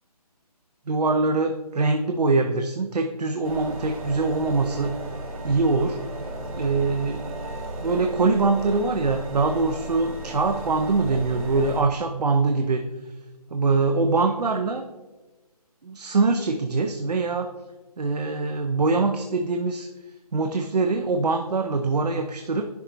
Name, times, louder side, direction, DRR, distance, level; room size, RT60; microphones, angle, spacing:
voice 1, 0.9-5.0 5.4-6.0 6.5-7.2 7.8-13.1 13.5-14.8 15.8-17.5 18.0-22.7, right 3 dB, 85° right, 5 dB, 0.6 m, -23 dB
sound 1, 3.4-11.8, right 1 dB, 60° right, 1.6 m, -35 dB
10.5 x 3.8 x 3.0 m, 1.2 s
figure-of-eight pair, 150°, 20 cm